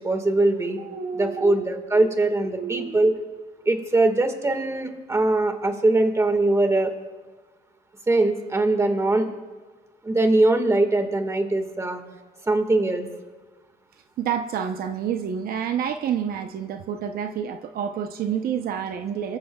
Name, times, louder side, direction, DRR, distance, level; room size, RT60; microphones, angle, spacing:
voice 1, 0.0-0.8 1.1-3.1 3.7-6.9 8.1-9.3 10.0-12.0 12.5-13.1, right 2 dB, 15° right, 6 dB, 1.7 m, -21 dB
voice 2, 0.8-1.7 2.5-3.0 14.2-19.4, right 8 dB, 60° right, 7 dB, 0.8 m, -29 dB
27.0 x 14.5 x 2.3 m, 1.3 s
cardioid pair, 110°, 17 cm